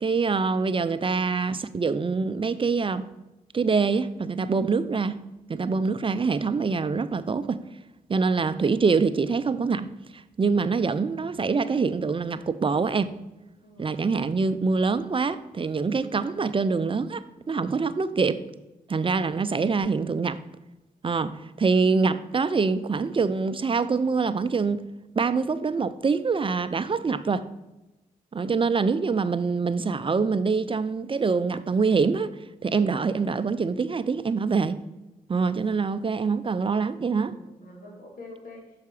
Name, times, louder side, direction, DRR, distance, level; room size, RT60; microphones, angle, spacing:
voice 1, 0.0-3.1 3.5-5.2 5.5-7.6 8.1-13.1 13.8-18.4 18.9-20.4 21.0-24.8 25.2-27.5 28.3-32.3 32.6-34.8 35.3-37.4, right 4 dB, 35° right, 0.5 m, -25 dB
voice 2, 13.6-14.0 36.0-36.1 37.3-38.7, left 2 dB, 65° left, 2.7 m, -46 dB
6.7 x 4.8 x 4.8 m
supercardioid pair, 45°, 16 cm